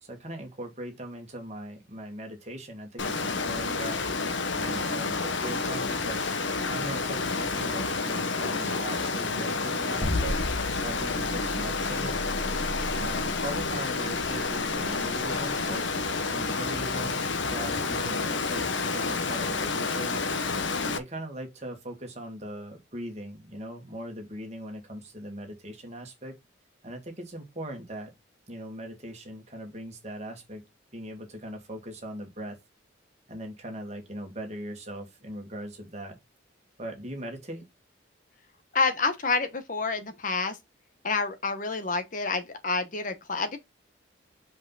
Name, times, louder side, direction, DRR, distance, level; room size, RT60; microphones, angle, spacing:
voice 1, 0.0-4.0 4.5-10.4 10.8-12.2 13.0-15.9 16.3-20.2 20.8-26.4 26.8-28.1 28.5-30.6 30.9-32.6 33.3-36.2 36.8-37.6, right 1 dB, 35° right, 2.1 m, -40 dB
Water, 3.0-21.0, left 4 dB, 75° left, 1.0 m, -29 dB
sound 1, 10.0-16.2, left 1 dB, 10° left, 2.0 m, -34 dB
voice 2, 38.7-40.6 41.0-43.6, left 4 dB, 45° left, 1.1 m, -28 dB
5.8 x 5.1 x 4.0 m
head